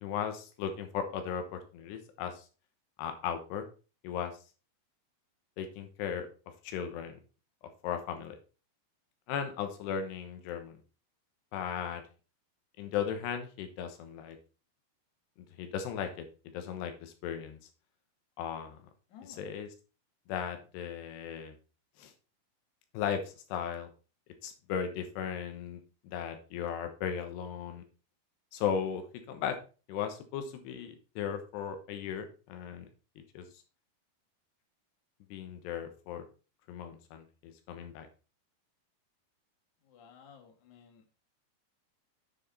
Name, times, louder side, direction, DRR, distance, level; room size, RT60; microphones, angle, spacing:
voice 1, 0.0-2.5 3.0-3.7 4.0-4.3 5.6-6.3 6.6-7.2 7.8-8.4 9.3-10.8 11.5-12.0 12.8-14.4 15.6-16.3 16.5-17.6 18.4-18.8 19.4-19.7 20.3-21.5 22.0-22.1 22.9-23.9 24.4-27.8 28.5-29.6 29.9-32.9 33.4-33.5 35.3-36.3 36.7-38.1, left 8 dB, 85° left, 7 dB, 3.3 m, -36 dB
voice 2, 19.1-19.6 39.8-41.1, left 7 dB, 55° left, 4 dB, 2.9 m, -55 dB
9.2 x 7.2 x 4.1 m, 0.34 s
omnidirectional pair, 4.7 m